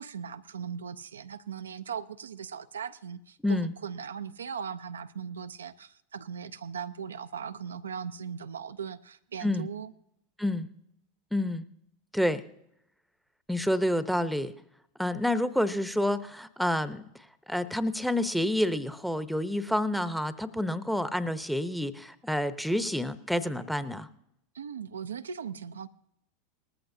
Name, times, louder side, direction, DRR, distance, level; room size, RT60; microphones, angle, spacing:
voice 1, 0.0-9.9 24.5-25.9, right 7 dB, 80° right, 10 dB, 0.5 m, -39 dB
voice 2, 3.4-3.7 9.4-9.7 10.4-10.7 11.3-11.7 12.1-12.4 13.5-14.5 15.0-17.0 17.5-24.1, left 1 dB, ahead, 12 dB, 0.8 m, -28 dB
19.5 x 14.0 x 2.7 m, 0.79 s
hypercardioid pair, 90°, 0 cm